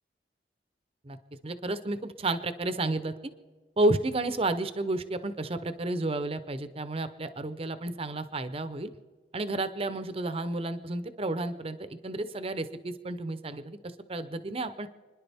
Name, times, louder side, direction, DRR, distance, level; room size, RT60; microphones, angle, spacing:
voice 1, 1.4-3.1 3.8-8.9 9.3-13.8 14.1-14.9, right 2 dB, 30° right, 11 dB, 0.7 m, -31 dB
30.0 x 10.5 x 3.5 m, 1.4 s
head